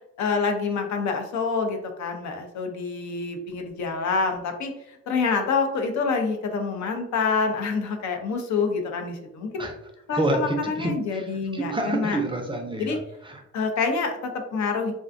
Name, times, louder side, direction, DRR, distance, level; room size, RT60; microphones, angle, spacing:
voice 1, 0.2-4.7 5.1-9.6 10.1-12.2 12.8-13.0 13.5-14.9, left 4 dB, 65° left, 4 dB, 0.6 m, -27 dB
voice 2, 10.1-13.4, right 2 dB, 15° right, 2 dB, 0.4 m, -28 dB
2.4 x 2.2 x 2.5 m, 0.82 s
cardioid pair, 90°, 30 cm